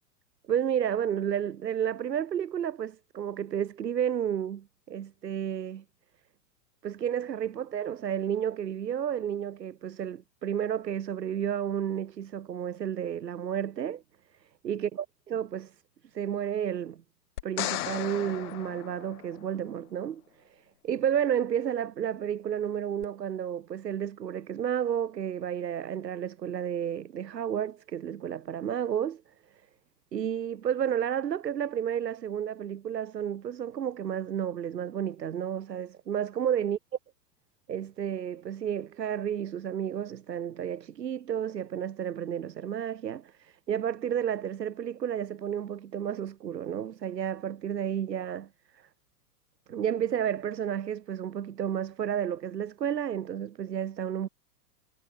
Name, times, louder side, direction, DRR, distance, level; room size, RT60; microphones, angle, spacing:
voice 1, 0.5-5.8 6.8-14.0 14.6-15.7 16.0-17.0 17.4-20.2 20.5-29.2 30.1-36.8 37.7-48.5 49.7-54.3, right 9 dB, 85° right, 2.0 m, -31 dB
sound 1, 17.4-19.7 23.0-23.1, left 15 dB, 65° left, 1.8 m, -36 dB
hypercardioid pair, 115°, 48 cm